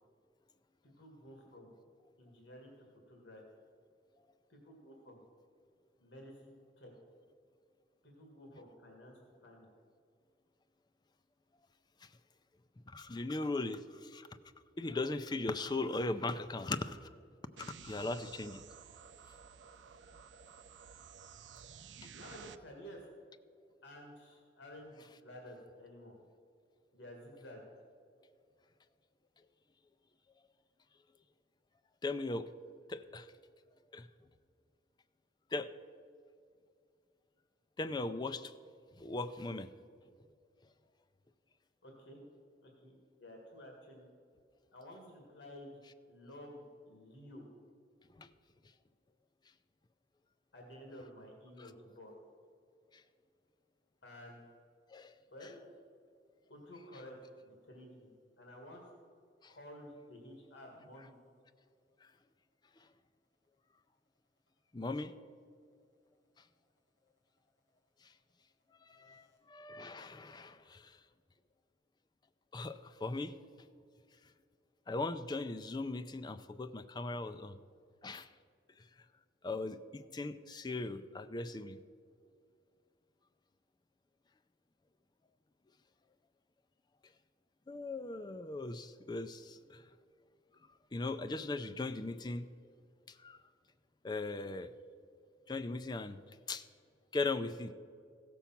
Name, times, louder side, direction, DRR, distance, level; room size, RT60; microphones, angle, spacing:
voice 1, 0.8-1.7 2.2-3.4 4.5-5.2 6.0-6.9 8.0-9.7 22.2-23.0 23.8-26.1 26.9-27.6 41.8-42.2 42.6-44.1 44.7-45.8 46.1-47.5 50.5-52.1 54.0-54.4 55.3-55.7 56.5-57.2 57.4-58.1 58.4-58.9 59.5-61.2 68.9-69.3, left 1 dB, 80° left, 0 dB, 2.0 m, -52 dB
voice 2, 12.9-14.3 14.8-17.1 17.6-18.6 22.0-22.1 32.0-32.5 32.9-33.3 33.9-34.1 35.5-35.7 37.8-38.5 39.0-39.7 48.2-48.3 51.6-51.7 52.9-53.0 54.9-55.2 59.4-59.5 62.0-62.1 64.7-65.1 68.0-68.1 68.8-71.0 72.5-73.4 74.9-77.6 78.0-78.3 79.4-81.8 87.7-89.8 90.9-92.5 93.1-93.4 94.0-94.7 95.5-96.2 96.5-96.6 97.1-97.7, left 2 dB, 25° left, 10 dB, 0.4 m, -39 dB
sound 1, 17.6-22.6, right 6 dB, 80° right, 0.5 m, -53 dB
15.5 x 7.0 x 5.8 m, 2.3 s
head